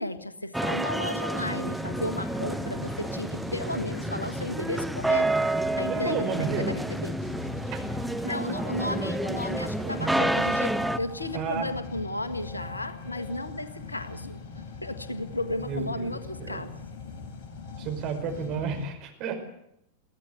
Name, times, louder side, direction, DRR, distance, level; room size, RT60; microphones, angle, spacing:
voice 1, 0.0-5.3 5.8-7.1 8.2-14.4 14.8-16.8, left 1 dB, 80° left, 11 dB, 1.5 m, -34 dB
sound 1, 0.5-11.0, right 1 dB, 5° right, 0.8 m, -29 dB
sound 2, 1.5-18.9, left 4 dB, 45° left, 6.0 m, -41 dB
voice 2, 5.9-6.8 7.7-7.8 9.8-10.2 11.3-11.7 15.6-16.6 17.8-19.4, right 5 dB, 40° right, 4 dB, 5.2 m, -32 dB
22.5 x 16.0 x 8.1 m, 0.81 s
figure-of-eight pair, 90°, 0 cm